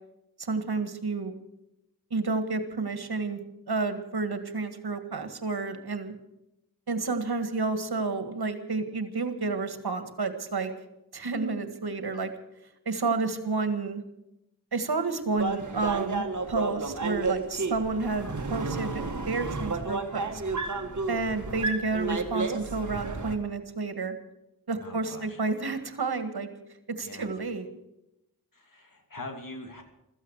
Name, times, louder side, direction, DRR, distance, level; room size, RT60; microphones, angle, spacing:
voice 1, 0.4-1.3 2.1-3.4 3.7-6.1 6.9-10.7 11.1-12.3 12.9-14.0 14.7-20.4 21.1-24.1 24.7-26.5 27.0-27.7, right 3 dB, 75° right, 8 dB, 1.9 m, -30 dB
sound 1, 15.4-23.4, right 3 dB, 50° right, 1.9 m, -32 dB
voice 2, 24.8-25.4 27.0-27.3 28.5-29.8, left 2 dB, 55° left, 4 dB, 2.8 m, -43 dB
15.5 x 14.0 x 6.4 m, 0.87 s
wide cardioid pair, 65°, 39 cm